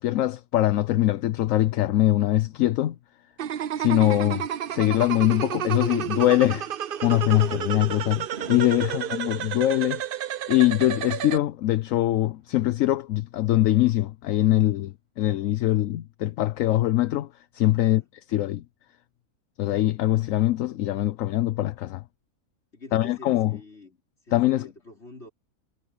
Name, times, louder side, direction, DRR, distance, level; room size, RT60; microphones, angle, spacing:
voice 1, 0.0-3.0 3.8-6.7 7.0-10.0 10.5-17.3 17.5-18.0 18.3-18.6 19.6-22.0 22.9-23.6 24.3-24.7, left 14 dB, 70° left, 0.9 m, -23 dB
Fireworks, 3.3-3.4 5.7-5.8 6.8-10.6 11.4-11.5 11.6-11.7 11.9-12.1 12.6-12.8, right 3 dB, 45° right, 2.9 m, -49 dB
sound 1, 3.4-11.4, right 10 dB, 70° right, 0.5 m, -31 dB
voice 2, 8.7-9.5 17.8-18.1 22.7-24.0 24.2-25.3, left 2 dB, 45° left, 5.1 m, -46 dB
omnidirectional pair, 1.6 m